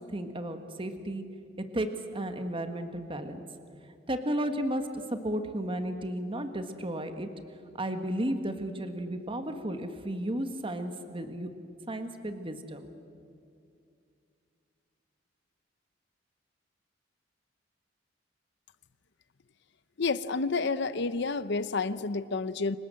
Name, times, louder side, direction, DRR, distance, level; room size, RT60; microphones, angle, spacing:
voice 1, 0.1-1.2 1.7-3.4 4.1-7.3 7.7-11.5 11.9-12.9, right 1 dB, 30° right, 7 dB, 1.7 m, -33 dB
voice 2, 20.0-22.8, left 4 dB, 65° left, 14 dB, 0.8 m, -30 dB
30.0 x 25.0 x 7.7 m, 2.4 s
head